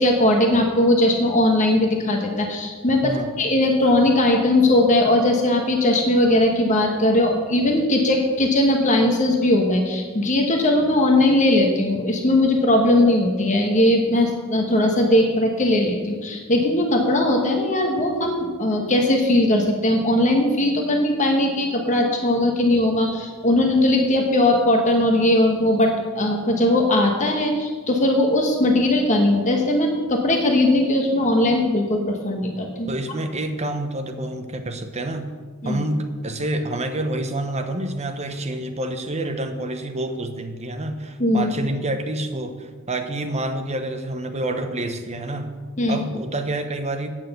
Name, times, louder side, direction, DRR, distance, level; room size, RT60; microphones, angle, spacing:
voice 1, 0.0-32.9 35.6-35.8 41.2-41.5 45.8-46.0, left 1 dB, 35° left, 2 dB, 1.2 m, -19 dB
voice 2, 3.0-3.3 32.9-35.2 35.6-45.5 45.9-47.1, right 1 dB, 30° right, 6 dB, 0.9 m, -28 dB
9.0 x 6.4 x 7.9 m, 1.5 s
head